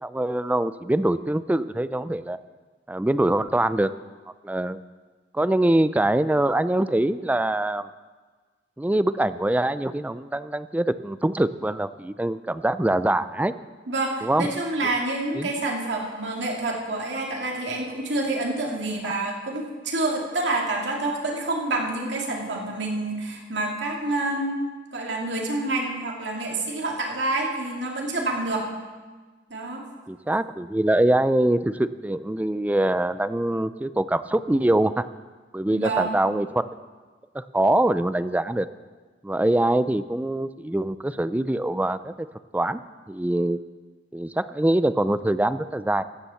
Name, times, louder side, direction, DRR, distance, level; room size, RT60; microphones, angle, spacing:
voice 1, 0.0-2.4 2.9-3.9 4.4-4.8 5.3-7.9 8.8-13.5 14.2-14.5 15.3-15.5 30.1-35.0 35.5-36.6 37.3-38.7 39.2-42.3 42.5-42.8 43.1-43.6 44.1-46.0, right 1 dB, 10° right, 14 dB, 0.3 m, -23 dB
voice 2, 13.9-24.6 24.9-28.7 29.5-29.8 35.7-36.2, right 2 dB, 80° right, 0 dB, 2.3 m, -28 dB
15.5 x 7.2 x 6.9 m, 1.4 s
head